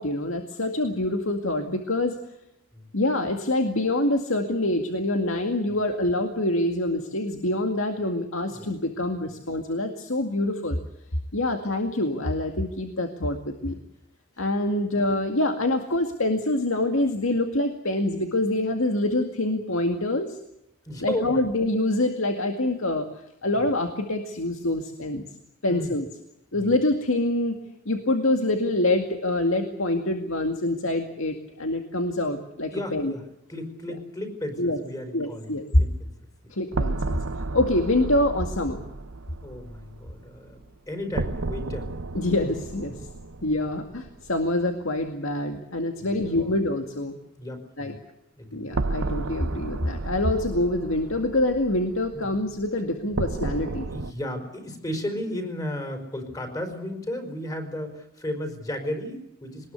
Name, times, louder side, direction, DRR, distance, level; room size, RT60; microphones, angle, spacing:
voice 1, 0.0-2.2 2.9-10.8 11.3-13.8 14.4-20.4 21.0-23.1 23.4-25.3 25.6-26.0 26.5-27.6 27.9-33.1 34.6-34.8 35.1-35.8 36.5-37.2 37.5-38.8 42.1-43.0 43.4-47.2 47.8-47.9 48.5-53.9, left 1 dB, 75° left, 5 dB, 2.2 m, -25 dB
voice 2, 20.8-21.4 23.5-23.6 25.7-25.9 26.5-26.7 32.7-35.5 35.8-36.1 36.4-36.5 39.4-41.9 46.0-46.6 47.4-48.0 48.4-48.7 52.1-52.3 53.8-59.7, left 1 dB, 20° left, 6 dB, 4.8 m, -34 dB
sound 1, 36.7-44.5 44.8-44.9 48.7-54.1, right 2 dB, 80° right, 0.9 m, -32 dB
23.0 x 20.0 x 8.1 m, 0.83 s
head